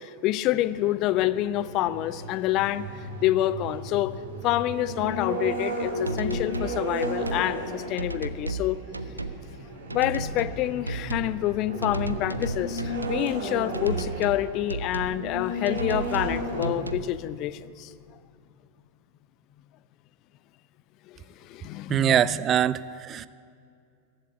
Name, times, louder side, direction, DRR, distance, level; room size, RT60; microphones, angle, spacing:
voice 1, 0.0-8.8 9.9-17.9 21.1-22.4, left 14 dB, 40° left, 17 dB, 0.5 m, -27 dB
sound 1, 0.6-16.7, right 1 dB, 65° right, 3.8 m, -35 dB
sound 2, 5.5-5.6 6.1-6.8 7.0-7.5 8.0-8.7 8.9-9.4 9.9-10.6 10.9-11.3 11.8-13.2 13.7-14.4 14.7-15.2 15.7-16.3 16.6-17.1, right 3 dB, 80° right, 0.5 m, -33 dB
voice 2, 21.9-23.3, right 10 dB, 30° right, 17 dB, 0.4 m, -23 dB
15.0 x 7.5 x 9.9 m, 2.4 s
figure-of-eight pair, 90°, 0 cm